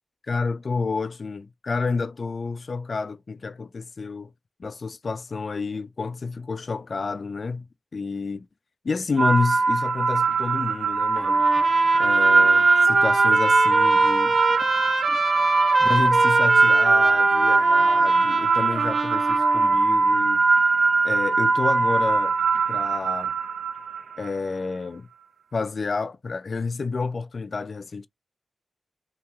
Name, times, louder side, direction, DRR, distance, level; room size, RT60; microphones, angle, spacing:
voice 1, 0.3-4.3 4.6-7.7 7.9-8.5 8.8-11.5 12.0-14.3 15.1-15.2 15.8-20.4 21.0-22.4 22.7-23.3 24.2-25.1 25.5-28.1, left 4 dB, 60° left, 0.3 m, -29 dB
sound 1, 9.2-24.3, right 3 dB, 85° right, 0.3 m, -20 dB
Trumpet, 11.2-19.8, right 2 dB, 55° right, 0.9 m, -27 dB
2.9 x 2.8 x 2.2 m
cardioid pair, 60°, 0 cm